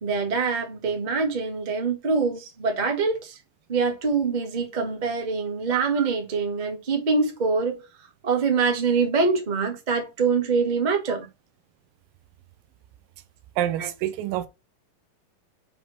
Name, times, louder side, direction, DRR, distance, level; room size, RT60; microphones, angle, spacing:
voice 1, 0.0-3.4 3.7-7.8 8.2-11.3 13.8-13.9, right 4 dB, 35° right, 0.7 m, -24 dB
voice 2, 13.6-14.5, right 12 dB, 80° right, 2.3 m, -27 dB
6.3 x 3.5 x 5.0 m
omnidirectional pair, 4.1 m